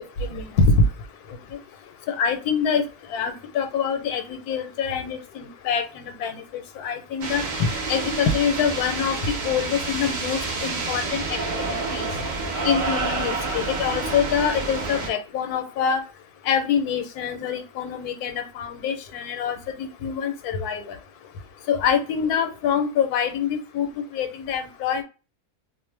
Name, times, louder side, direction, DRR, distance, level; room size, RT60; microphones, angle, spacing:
voice 1, 0.2-0.8 2.1-2.8 3.1-11.4 11.7-12.1 12.6-16.0 16.5-20.9 21.7-25.0, left 6 dB, 85° left, 7 dB, 1.1 m, -25 dB
sound 1, 7.2-15.1, right 3 dB, 85° right, 0.4 m, -28 dB
2.5 x 2.1 x 3.1 m, 0.32 s
omnidirectional pair, 1.6 m